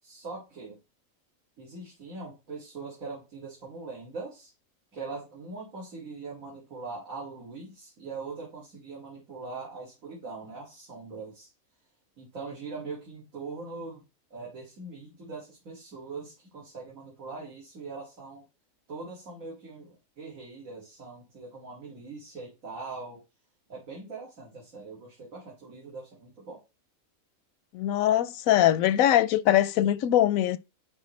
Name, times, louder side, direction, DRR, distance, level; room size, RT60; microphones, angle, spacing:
voice 1, 0.0-0.8 1.6-4.5 4.9-11.5 12.2-14.0 14.3-18.4 18.9-23.2 23.7-26.6 28.7-28.8, right 3 dB, 75° right, 2.6 m, -41 dB
voice 2, 27.7-30.6, left 12 dB, 85° left, 1.0 m, -22 dB
10.5 x 4.5 x 3.2 m
omnidirectional pair, 1.4 m